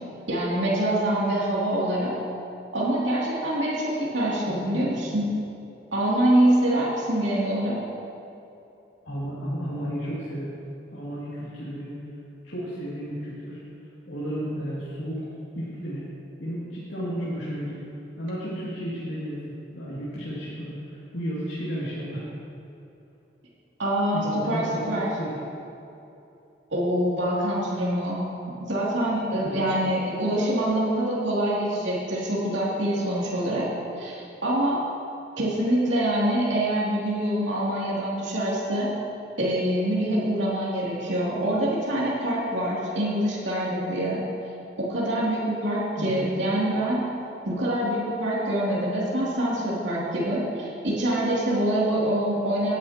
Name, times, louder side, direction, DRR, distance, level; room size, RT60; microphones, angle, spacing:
voice 1, 0.3-2.1 2.7-5.3 5.9-7.8 23.8-25.1 26.7-28.2 28.7-33.7 34.0-34.8 35.4-38.9 39.4-44.2 44.8-47.0 47.4-52.8, right 1 dB, 80° right, -6 dB, 2.7 m, -25 dB
voice 2, 4.5-4.9 9.1-10.5 10.9-12.0 12.4-13.6 14.1-15.3 15.6-16.1 16.4-17.8 18.2-22.2 24.1-25.3 29.4-29.7 46.0-46.4, equal, 80° left, -8 dB, 2.5 m, -33 dB
18.0 x 10.5 x 2.9 m, 2.9 s
head